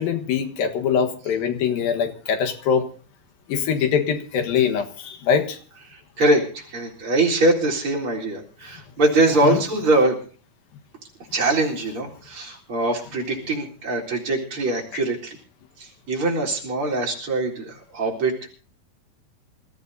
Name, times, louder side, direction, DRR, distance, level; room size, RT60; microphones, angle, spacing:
voice 1, 0.0-2.9 3.5-5.6 9.4-9.6, left 7 dB, 80° left, 5 dB, 3.2 m, -23 dB
voice 2, 5.9-10.2 11.3-15.4 15.8-18.5, right 2 dB, 35° right, -3 dB, 4.5 m, -23 dB
26.5 x 14.5 x 2.7 m, 0.40 s
omnidirectional pair, 4.1 m